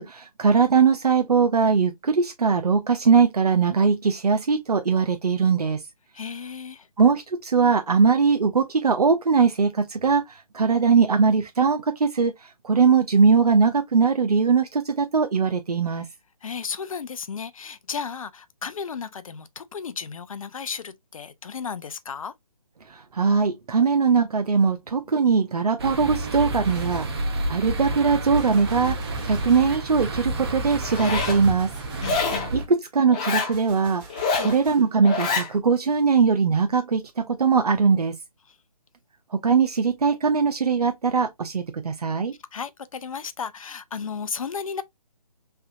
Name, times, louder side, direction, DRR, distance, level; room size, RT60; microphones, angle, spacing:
voice 1, 0.0-5.8 7.0-12.3 12.6-16.1 22.9-31.7 32.5-32.6 32.9-34.0 34.4-38.1 39.3-42.3, right 5 dB, 80° right, 0.6 m, -21 dB
voice 2, 6.1-6.9 15.9-16.0 16.4-22.3 32.0-32.5 34.4-34.6 38.5-38.6 42.5-44.8, left 6 dB, 60° left, 0.6 m, -34 dB
sound 1, 25.8-32.7, right 1 dB, 40° right, 0.8 m, -30 dB
Gunshot gunfire, 26.6-27.3 28.3-29.8 30.9-32.4 33.5-34.9, right 3 dB, 20° right, 2.3 m, -45 dB
Zipper (clothing), 30.8-31.4 32.0-32.5 33.1-33.5 34.1-34.5 35.0-35.5, left 4 dB, 10° left, 0.4 m, -26 dB
3.4 x 3.4 x 2.7 m
figure-of-eight pair, 150°, 19 cm